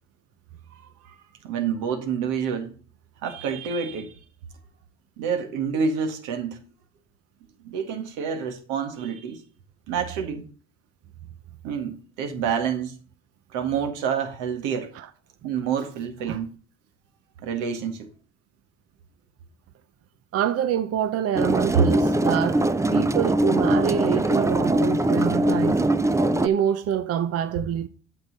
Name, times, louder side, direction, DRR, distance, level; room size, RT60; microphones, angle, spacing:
voice 1, 1.4-2.8 3.2-4.1 5.2-6.6 7.6-9.4 9.9-10.4 11.6-12.9 13.5-14.9 15.4-16.5 17.4-18.1, right 7 dB, 75° right, 1.9 m, -28 dB
voice 2, 20.3-25.8 26.4-27.9, right 9 dB, 50° right, 0.8 m, -26 dB
sound 1, 21.3-26.5, right 1 dB, 10° right, 0.6 m, -22 dB
8.7 x 6.5 x 4.2 m
hypercardioid pair, 70°, 32 cm